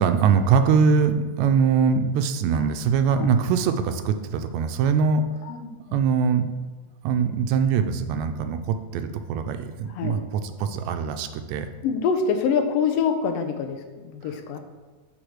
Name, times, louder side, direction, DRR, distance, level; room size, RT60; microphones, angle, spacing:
voice 1, 0.0-5.2 5.9-6.5 7.0-11.7 14.2-14.6, right 6 dB, 80° right, 8 dB, 1.8 m, -22 dB
voice 2, 5.5-6.0 9.9-10.2 11.8-14.6, left 6 dB, 75° left, 6 dB, 1.6 m, -25 dB
7.9 x 3.5 x 6.3 m, 1.3 s
omnidirectional pair, 3.4 m